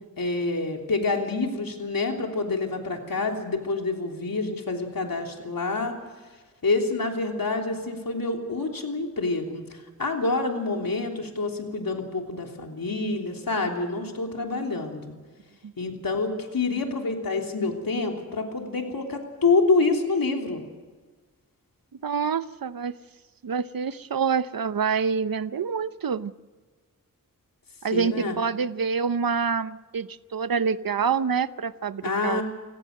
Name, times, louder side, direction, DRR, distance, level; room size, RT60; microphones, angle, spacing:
voice 1, 0.2-6.0 6.6-15.0 15.8-20.6 27.9-28.4 32.0-32.4, left 3 dB, 90° left, 2 dB, 3.4 m, -27 dB
voice 2, 22.0-22.9 23.4-26.3 27.8-32.4, right 6 dB, 90° right, 14 dB, 0.8 m, -27 dB
29.0 x 18.0 x 6.6 m, 1.4 s
wide cardioid pair, 80°, 34 cm